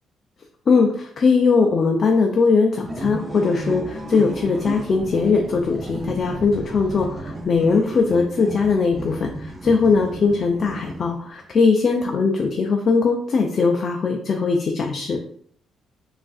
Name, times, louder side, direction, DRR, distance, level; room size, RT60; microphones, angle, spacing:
voice 1, 0.7-15.2, left 4 dB, 45° left, 2 dB, 0.3 m, -20 dB
sound 1, 2.8-11.3, right 1 dB, 25° right, 0.5 m, -33 dB
3.4 x 2.4 x 2.3 m, 0.62 s
cardioid pair, 90°, 0 cm